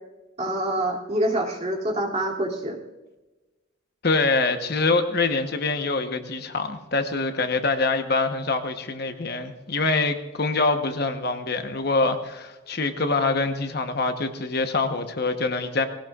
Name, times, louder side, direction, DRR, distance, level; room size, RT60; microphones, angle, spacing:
voice 1, 0.4-2.8, right 1 dB, 35° right, -1 dB, 2.8 m, -26 dB
voice 2, 4.0-15.9, left 3 dB, 50° left, 7 dB, 1.1 m, -25 dB
19.5 x 17.0 x 2.5 m, 1.1 s
head